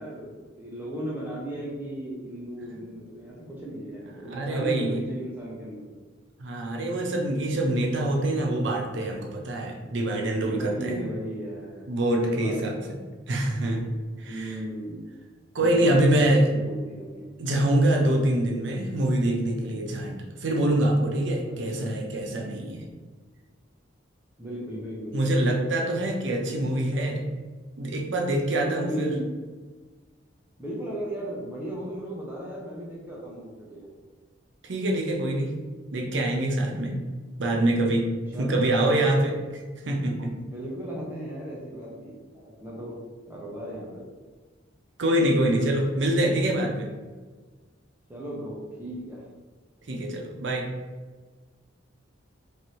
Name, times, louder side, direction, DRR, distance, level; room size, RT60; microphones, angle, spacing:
voice 1, 0.0-5.9 10.4-11.9 12.2-12.8 14.2-15.0 15.6-17.3 21.5-22.0 24.4-25.3 28.5-29.2 30.6-33.9 38.3-38.6 40.4-43.0 43.3-44.0 48.1-49.2, right 1 dB, 10° right, -6 dB, 0.6 m, -36 dB
voice 2, 4.3-5.0 6.4-11.0 11.9-12.8 13.3-13.9 14.2-14.6 15.5-16.5 17.4-22.8 25.1-27.2 27.8-29.1 34.6-35.6 35.9-37.0 37.4-38.1 38.4-39.4 39.8-40.3 45.0-46.9 49.9-50.7, right 1 dB, 70° right, 0 dB, 0.6 m, -25 dB
3.2 x 2.6 x 4.2 m, 1.4 s
head